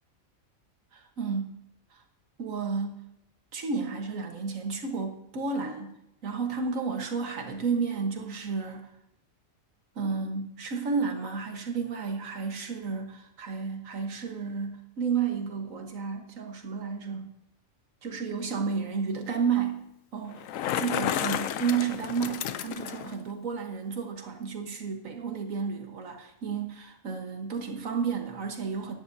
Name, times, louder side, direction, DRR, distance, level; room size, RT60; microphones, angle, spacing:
voice 1, 0.9-1.5 1.9-2.0 2.4-3.1 3.5-6.0 6.2-8.9 10.0-17.3 18.0-19.8 20.1-20.4 20.8-29.0, right 5 dB, 80° right, 4 dB, 1.7 m, -32 dB
Bicycle, 20.3-23.2, left 10 dB, 80° left, 1.0 m, -32 dB
15.0 x 11.0 x 2.7 m, 0.81 s
omnidirectional pair, 1.4 m